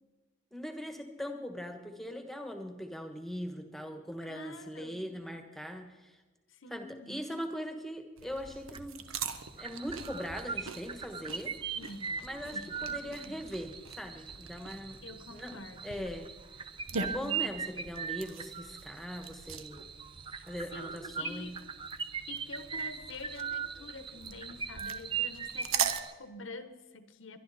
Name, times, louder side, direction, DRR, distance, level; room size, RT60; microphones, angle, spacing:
voice 1, 0.5-6.1 6.7-9.0 9.6-11.5 12.2-15.0 15.3-16.3 17.0-19.9 20.5-21.5, equal, ahead, 5 dB, 1.3 m, -41 dB
voice 2, 4.2-5.1 6.5-7.3 11.8-12.2 12.5-13.4 15.0-16.1 17.0-17.6 20.3-20.4 20.7-21.6 22.3-27.4, left 2 dB, 70° left, 10 dB, 1.2 m, -47 dB
sound 1, 8.2-26.0, right 6 dB, 80° right, 1.0 m, -42 dB
sound 2, 8.7-9.0 9.3-26.1, right 7 dB, 25° right, 0.5 m, -40 dB
22.5 x 11.0 x 4.2 m, 1.3 s
head